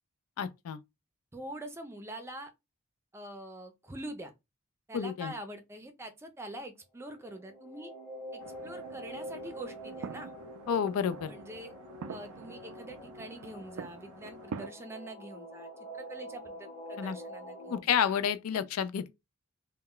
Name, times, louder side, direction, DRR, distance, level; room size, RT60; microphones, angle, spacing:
voice 1, 0.4-0.8 4.9-5.3 10.7-11.3 17.0-17.2 17.7-19.1, left 7 dB, 85° left, 0.4 m, -30 dB
voice 2, 1.3-2.5 3.1-4.3 4.9-7.9 8.3-10.3 11.3-11.7 12.1-15.7 15.9-18.0 18.5-18.6, right 1 dB, 10° right, 0.4 m, -44 dB
sound 1, 7.1-17.8, equal, 15° left, 0.8 m, -46 dB
sound 2, 8.4-14.7, right 6 dB, 90° right, 0.3 m, -46 dB
2.1 x 2.1 x 3.6 m
head